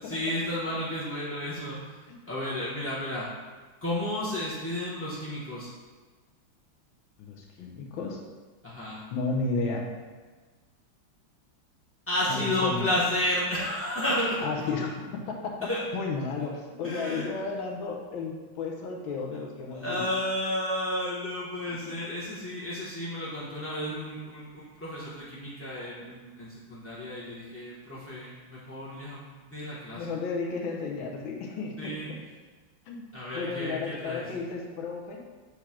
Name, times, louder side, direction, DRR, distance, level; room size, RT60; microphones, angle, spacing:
voice 1, 0.0-1.9 2.3-3.3 3.8-5.7 8.6-9.0 12.1-14.5 15.7-15.8 16.8-17.3 19.3-19.4 19.7-30.2 31.8-32.1 33.1-34.3, left 1 dB, 15° left, -8 dB, 0.5 m, -32 dB
voice 2, 7.2-8.2 9.1-9.9 12.3-12.9 14.4-15.6 15.9-20.0 21.9-22.0 23.9-24.1 29.9-31.9 32.9-33.1 33.3-35.2, left 4 dB, 80° left, 1 dB, 1.7 m, -33 dB
6.3 x 3.4 x 5.8 m, 1.3 s
omnidirectional pair, 2.2 m